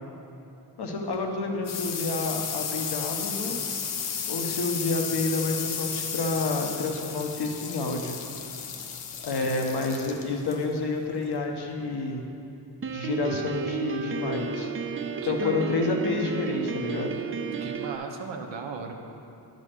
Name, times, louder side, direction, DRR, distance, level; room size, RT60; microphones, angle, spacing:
voice 1, 0.8-3.6 4.3-8.2 9.2-12.2 12.9-14.7 15.3-17.2, left 3 dB, 65° left, 2 dB, 1.1 m, -29 dB
sound 1, 0.9-12.2, left 7 dB, 85° left, 0.8 m, -34 dB
Piano, 12.8-18.0, right 5 dB, 30° right, 0.4 m, -32 dB
voice 2, 15.2-16.0 17.6-18.9, right 5 dB, 90° right, 2 dB, 0.9 m, -37 dB
9.9 x 4.1 x 6.6 m, 2.8 s
cardioid pair, 75°, 43 cm